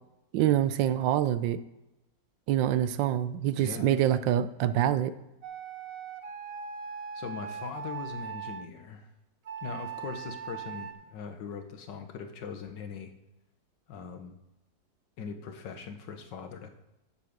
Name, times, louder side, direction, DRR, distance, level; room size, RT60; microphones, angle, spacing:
voice 1, 0.3-1.6 2.5-5.1, right 11 dB, 80° right, 14 dB, 1.3 m, -26 dB
voice 2, 3.6-3.9 7.2-9.1 9.6-13.1 13.9-14.4 15.2-16.7, left 6 dB, 70° left, 7 dB, 1.7 m, -40 dB
sound 1, 5.4-8.7 9.5-10.9, right 7 dB, 55° right, 1.1 m, -40 dB
8.5 x 7.0 x 6.6 m, 0.92 s
omnidirectional pair, 2.0 m